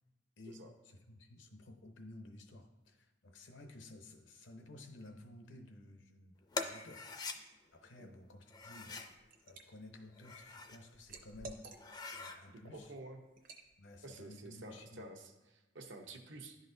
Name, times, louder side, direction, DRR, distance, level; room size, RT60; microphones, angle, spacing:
voice 1, 0.4-7.4 7.7-9.0 9.4-11.6 12.1-12.9 13.8-15.1, left 2 dB, 80° left, 5 dB, 0.7 m, -54 dB
sound 1, 6.5-7.4 8.5-9.1 10.1-10.8 11.3-11.4 11.7-12.4, left 4 dB, 20° left, 0.4 m, -43 dB
Liquid, 8.9-9.6 10.1-12.2 12.6-12.8 13.4-13.7, right 2 dB, 50° right, 0.6 m, -52 dB
voice 2, 12.5-13.2 14.0-16.6, right 2 dB, 80° right, 3 dB, 0.8 m, -50 dB
11.0 x 4.0 x 2.7 m, 1.1 s
head